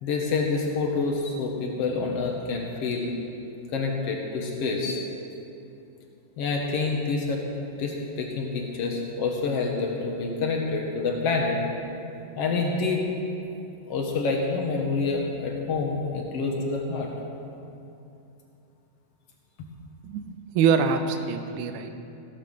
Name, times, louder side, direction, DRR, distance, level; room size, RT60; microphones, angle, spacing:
voice 1, 0.0-3.1 3.7-5.0 6.4-7.4 7.8-11.6 12.4-13.1 13.9-17.1, left 4 dB, 70° left, 0 dB, 1.5 m, -27 dB
voice 2, 20.0-21.9, right 6 dB, 80° right, 7 dB, 1.8 m, -24 dB
16.0 x 7.4 x 6.5 m, 2.8 s
omnidirectional pair, 4.3 m